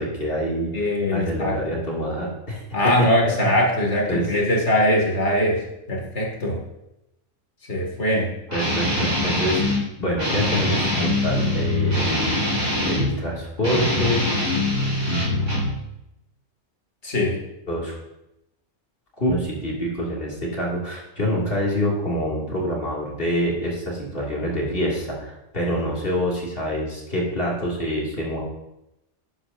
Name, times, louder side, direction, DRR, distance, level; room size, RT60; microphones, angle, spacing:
voice 1, 0.0-2.6 3.0-3.1 3.4-3.5 4.1-4.3 8.5-9.6 10.0-12.4 12.8-14.2 15.1-15.3 17.7-18.0 19.2-28.4, equal, 55° left, -4 dB, 2.4 m, -26 dB
voice 2, 0.7-1.6 2.7-6.6 7.7-8.3 17.0-17.4, left 1 dB, 90° left, -1 dB, 2.3 m, -21 dB
Guitar, 8.5-9.8 10.2-13.1 13.6-15.8, left 1 dB, 30° right, 3.7 m, -23 dB
11.0 x 9.9 x 2.5 m, 0.88 s
omnidirectional pair, 1.1 m